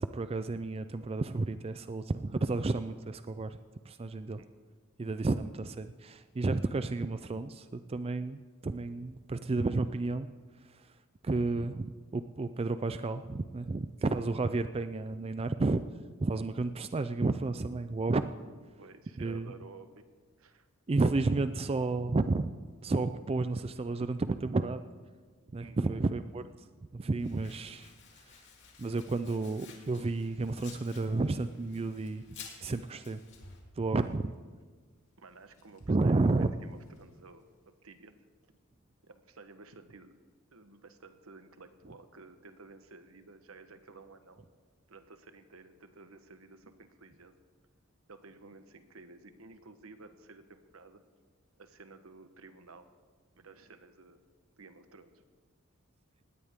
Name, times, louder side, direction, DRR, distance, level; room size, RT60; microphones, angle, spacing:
voice 1, 0.0-3.6 3.9-4.4 5.0-10.3 11.2-15.8 16.2-18.3 19.2-19.5 20.9-22.5 22.8-24.8 25.5-26.4 26.9-27.9 28.8-32.2 32.6-33.2 33.8-34.3 35.9-36.5, right 3 dB, 30° right, 11 dB, 0.4 m, -31 dB
voice 2, 4.2-4.5 14.7-14.8 18.8-20.1 20.4-20.7 25.6-26.0 34.0-34.1 35.2-38.2 39.0-40.2 40.5-44.4 44.9-47.3 48.1-51.0 51.6-52.9 53.3-54.2 54.6-55.2, right 3 dB, 75° right, 9 dB, 1.1 m, -53 dB
Domestic sounds home sounds, 27.2-33.6, left 6 dB, 55° left, 2.9 m, -54 dB
sound 1, 33.1-38.0 38.7-38.8, equal, 85° left, 2.8 m, -61 dB
19.5 x 16.5 x 3.6 m, 1.5 s
head